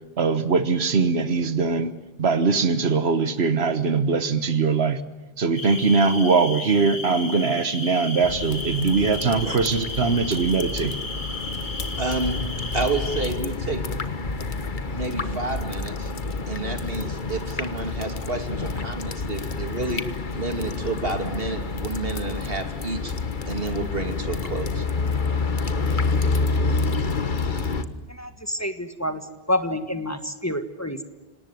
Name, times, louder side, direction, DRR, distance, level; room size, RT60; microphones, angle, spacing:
voice 1, 0.2-1.9 2.2-5.0 5.4-10.9, right 4 dB, 90° right, 11 dB, 1.5 m, -21 dB
sound 1, 5.6-13.3, left 3 dB, 75° left, 3.3 m, -34 dB
sound 2, 8.2-27.8, left 4 dB, 50° left, 1.5 m, -28 dB
voice 2, 12.0-12.4 12.7-13.8 14.9-16.1 16.5-20.0 20.3-23.1 23.5-24.8 27.1-27.3, right 3 dB, 65° right, 5 dB, 3.0 m, -30 dB
voice 3, 28.2-29.2 29.5-31.0, left 1 dB, 15° left, 8 dB, 1.5 m, -28 dB
27.0 x 18.5 x 9.3 m, 1.1 s
omnidirectional pair, 1.0 m